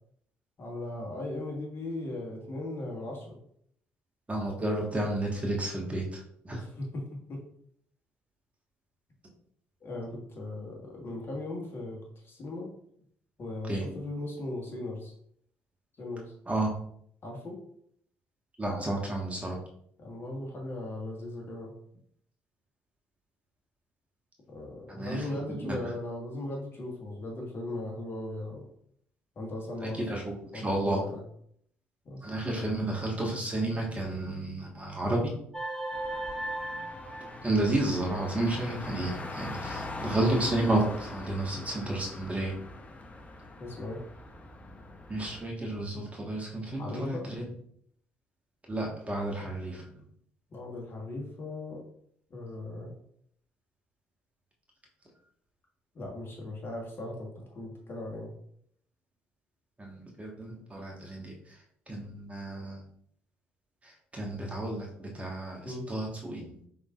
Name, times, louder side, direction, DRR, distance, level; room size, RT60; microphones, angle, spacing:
voice 1, 0.6-3.4 6.6-6.8 7.3-7.4 9.8-12.0 12.2-12.7 13.4-15.1 16.0-16.3 17.2-17.6 20.0-21.7 24.5-28.6 29.3-30.0 30.5-31.2 32.0-32.3 43.6-44.0 46.7-47.2 50.5-51.8 52.3-52.9 55.9-58.3 65.6-65.8, left 2 dB, 45° left, -1 dB, 1.5 m, -38 dB
voice 2, 4.3-6.6 13.6-13.9 16.5-16.8 18.6-19.6 24.9-25.8 29.8-31.0 32.2-35.4 37.4-42.6 45.1-47.5 48.7-50.0 59.8-62.8 63.8-66.6, right 1 dB, 25° right, -1 dB, 1.5 m, -32 dB
sound 1, 35.5-38.2, right 1 dB, 5° left, 1.2 m, -37 dB
Car, 35.9-45.5, left 2 dB, 25° left, 0.8 m, -42 dB
5.2 x 3.9 x 2.5 m, 0.67 s
figure-of-eight pair, 45°, 6 cm